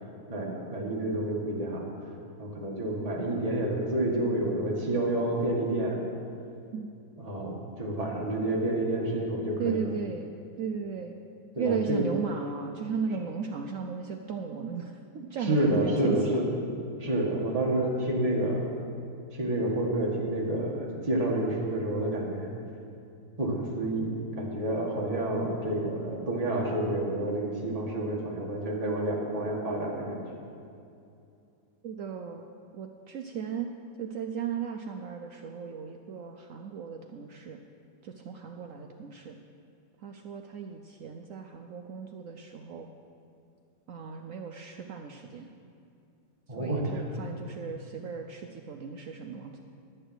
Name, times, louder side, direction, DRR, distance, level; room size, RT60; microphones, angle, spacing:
voice 1, 0.3-1.9 2.4-6.0 7.2-9.8 11.5-12.0 15.4-16.5 17.0-18.7 19.3-22.5 23.4-30.2 46.5-46.8, right 1 dB, 20° right, -3 dB, 1.6 m, -29 dB
voice 2, 9.6-10.3 10.6-11.1 11.6-16.2 31.8-32.5 32.7-33.7 34.0-37.6 38.0-39.4 40.0-42.9 43.9-45.5 46.6-49.6, right 6 dB, 70° right, 4 dB, 0.8 m, -36 dB
11.0 x 6.7 x 7.9 m, 2.5 s
omnidirectional pair, 1.9 m